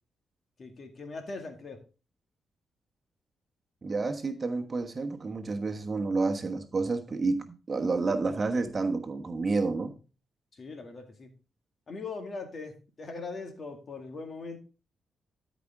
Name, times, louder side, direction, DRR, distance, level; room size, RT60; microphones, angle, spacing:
voice 1, 0.6-1.8 10.5-11.3 11.9-14.6, left 3 dB, 50° left, 5 dB, 2.0 m, -40 dB
voice 2, 3.8-9.9, right 3 dB, 35° right, 6 dB, 1.2 m, -30 dB
13.0 x 5.2 x 3.6 m, 0.34 s
cardioid pair, 80°, 0 cm